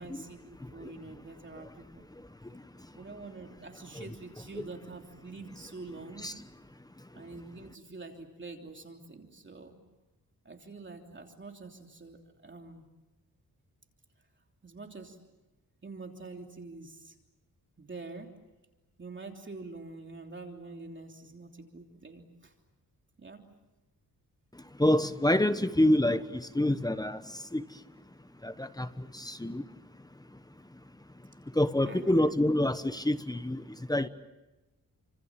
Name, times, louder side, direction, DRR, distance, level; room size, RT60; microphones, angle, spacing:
voice 1, 0.0-2.0 2.9-6.3 7.1-9.7 10.4-12.9 14.6-15.2 15.8-17.1 17.8-18.3 19.0-22.5 23.2-23.5 31.8-32.3, right 3 dB, 35° right, 3 dB, 3.2 m, -46 dB
voice 2, 24.8-27.2 27.5-27.6 28.4-28.9 29.2-29.6 31.6-33.6 33.9-34.1, left 1 dB, 10° left, 11 dB, 1.1 m, -26 dB
29.5 x 26.5 x 7.4 m, 1.1 s
wide cardioid pair, 100°, 35 cm